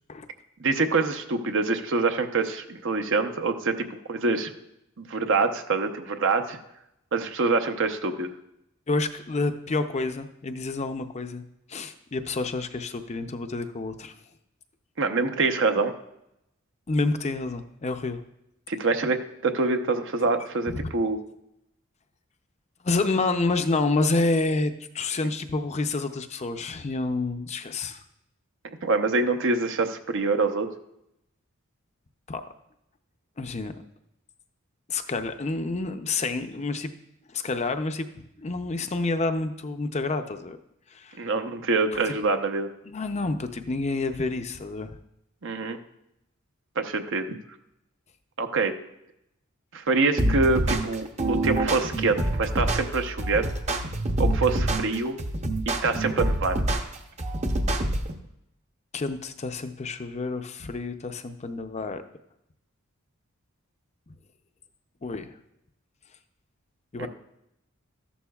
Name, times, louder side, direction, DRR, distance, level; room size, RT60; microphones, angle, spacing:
voice 1, 0.6-4.5 5.0-6.6 7.1-8.3 15.0-15.9 18.7-21.2 28.8-30.7 41.2-42.7 45.4-45.8 46.8-47.3 48.4-48.7 49.7-53.5 54.2-55.2 55.7-56.6 67.0-67.1, right 3 dB, 65° right, 6 dB, 0.9 m, -25 dB
voice 2, 8.9-14.1 16.9-18.2 20.7-20.9 22.8-28.0 32.3-32.4 33.4-33.7 34.9-36.9 37.3-38.1 38.4-40.6 40.9-41.3 41.9-42.0 42.8-44.9 58.9-62.0 65.0-65.3 66.9-67.1, left 3 dB, 35° left, 8 dB, 0.6 m, -28 dB
sound 1, 50.2-58.2, right 1 dB, 35° right, 0.8 m, -26 dB
13.5 x 11.0 x 2.4 m, 0.82 s
head